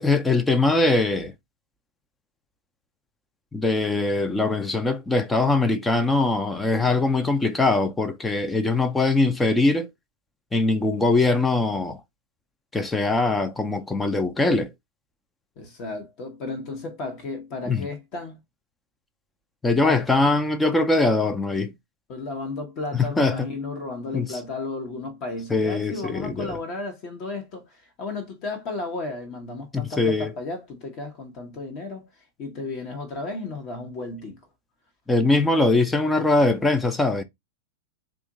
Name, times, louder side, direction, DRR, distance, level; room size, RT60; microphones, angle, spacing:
voice 1, 0.0-1.3 3.5-9.9 10.5-12.0 12.7-14.7 17.7-17.9 19.6-21.7 22.9-23.4 24.1-24.3 25.5-26.6 29.7-30.3 35.1-37.2, left 3 dB, 10° left, 0.4 m, -22 dB
voice 2, 15.6-18.4 19.8-20.0 22.1-34.4, left 3 dB, 45° left, 1.0 m, -34 dB
2.9 x 2.4 x 3.6 m
hypercardioid pair, 105°, 0 cm